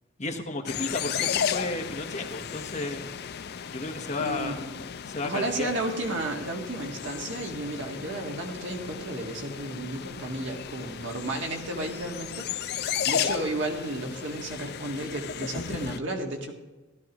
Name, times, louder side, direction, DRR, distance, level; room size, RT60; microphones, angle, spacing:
voice 1, 0.2-3.0 3.7-4.7 5.0-5.7 7.9-8.0, left 2 dB, 40° left, 4 dB, 1.2 m, -33 dB
sound 1, 0.7-16.0, left 8 dB, 55° left, 0.5 m, -34 dB
voice 2, 4.2-4.8 5.2-16.5, right 1 dB, 70° right, 1 dB, 1.7 m, -33 dB
16.0 x 12.0 x 3.0 m, 1.2 s
head